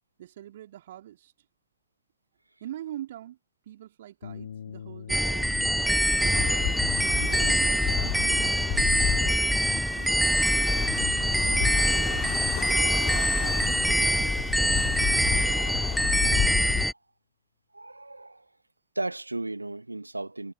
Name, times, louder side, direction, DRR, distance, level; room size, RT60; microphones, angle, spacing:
voice 1, 0.2-1.3 2.6-3.4 3.6-6.7 7.1-8.9 9.2-9.4 9.7-11.9 12.7-14.1, right 12 dB, 60° right, 2.9 m, -44 dB
sound 1, 4.2-12.7, left 7 dB, 70° left, 2.4 m, -47 dB
sound 2, 5.1-16.9, equal, ahead, 0.9 m, -24 dB
sound 3, 6.2-16.8, left 26 dB, 40° left, 3.1 m, -32 dB
voice 2, 17.7-18.5 18.9-20.5, right 2 dB, 85° right, 2.5 m, -35 dB
figure-of-eight pair, 90°, 0 cm